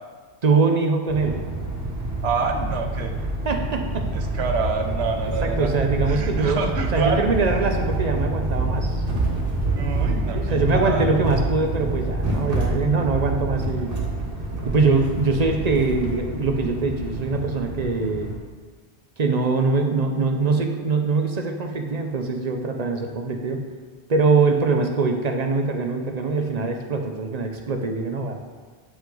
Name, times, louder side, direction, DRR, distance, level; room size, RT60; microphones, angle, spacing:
voice 1, 0.4-1.4 3.4-4.3 5.4-6.6 6.9-9.0 10.3-13.9 14.7-18.3 19.2-23.6 24.1-28.4, right 4 dB, 45° right, 4 dB, 0.8 m, -23 dB
sound 1, 1.1-18.4, right 2 dB, 60° right, 1.5 m, -27 dB
voice 2, 2.2-3.1 4.1-5.7 6.1-7.2 9.6-11.1, right 5 dB, 75° right, 3 dB, 1.1 m, -27 dB
8.6 x 5.7 x 3.8 m, 1.5 s
omnidirectional pair, 1.1 m